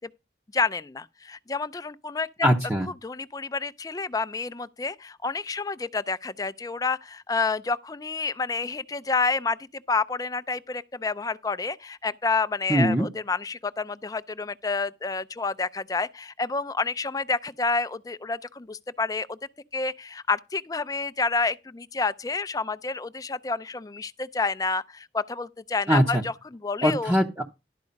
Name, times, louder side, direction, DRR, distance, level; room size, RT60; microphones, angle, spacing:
voice 1, 0.5-2.3 3.0-9.6 9.9-19.4 19.7-27.1, left 4 dB, 20° left, 0.4 m, -29 dB
voice 2, 2.4-2.9 12.7-13.1 25.9-26.2 26.8-27.4, equal, 15° right, 0.7 m, -21 dB
12.0 x 4.7 x 5.2 m
head